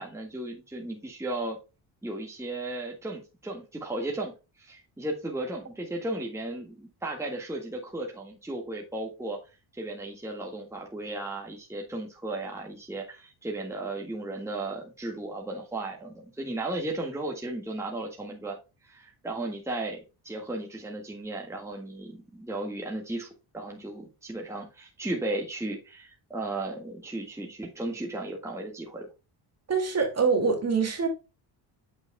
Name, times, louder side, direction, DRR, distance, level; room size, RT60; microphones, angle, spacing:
voice 1, 0.0-1.6 2.0-9.4 9.8-18.6 18.8-20.0 20.2-29.1, right 2 dB, 5° right, 1.7 m, -35 dB
voice 2, 29.7-31.1, right 5 dB, 35° right, 2.3 m, -24 dB
8.2 x 6.3 x 2.2 m
cardioid pair, 105°, 45 cm